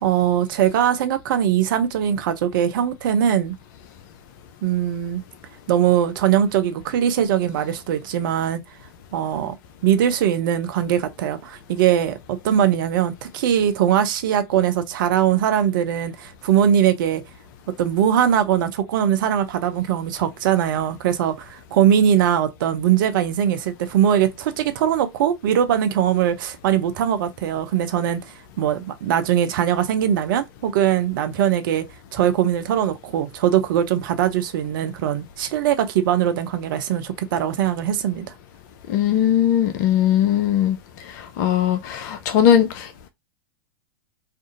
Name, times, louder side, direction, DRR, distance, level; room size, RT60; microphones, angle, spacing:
voice 1, 0.0-3.6 4.6-5.2 5.7-8.6 9.1-9.5 9.8-17.2 17.8-31.8 32.1-38.2, right 10 dB, 55° right, 0.5 m, -21 dB
voice 2, 38.9-40.8 41.4-43.1, left 10 dB, 50° left, 0.4 m, -19 dB
2.5 x 2.4 x 2.4 m
figure-of-eight pair, 100°, 13 cm